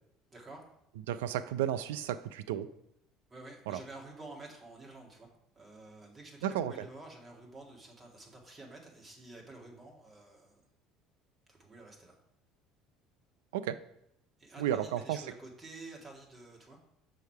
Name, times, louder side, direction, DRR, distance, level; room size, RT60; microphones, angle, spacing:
voice 1, 0.3-0.6 3.3-5.3 5.5-10.6 11.5-12.2 14.4-17.0, right 2 dB, 25° right, -1 dB, 2.1 m, -50 dB
voice 2, 1.1-2.7 3.7-3.8 6.4-6.7 13.5-13.8 14.6-15.2, right 11 dB, 80° right, 13 dB, 0.4 m, -33 dB
6.3 x 4.9 x 4.6 m, 0.79 s
hypercardioid pair, 70°, 0 cm